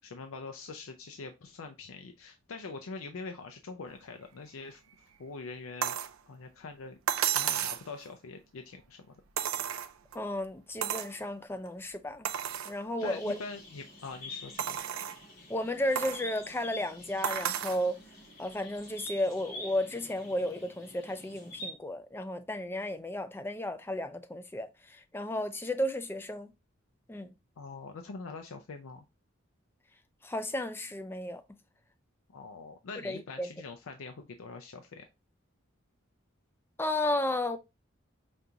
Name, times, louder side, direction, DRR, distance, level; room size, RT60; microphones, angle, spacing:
voice 1, 0.0-4.8 5.2-6.0 6.3-7.0 7.3-9.1 13.0-14.8 27.6-29.0 32.3-35.0, left 4 dB, 85° left, 0.5 m, -44 dB
sound 1, 5.8-6.1 7.1-7.9 9.4-10.2 10.8-11.1 11.7-11.8 12.2-12.7 13.4-13.5 14.6-15.2 16.0-16.2 17.2-17.8 19.1-19.2, right 9 dB, 85° right, 0.4 m, -32 dB
voice 2, 10.1-12.3 12.7-13.4 15.5-18.0 18.4-26.5 27.1-27.3 30.2-31.4 33.0-33.5 36.8-37.6, left 1 dB, 10° left, 0.3 m, -33 dB
sound 2, 13.0-21.7, left 1 dB, 60° left, 2.6 m, -47 dB
5.3 x 2.4 x 2.7 m
head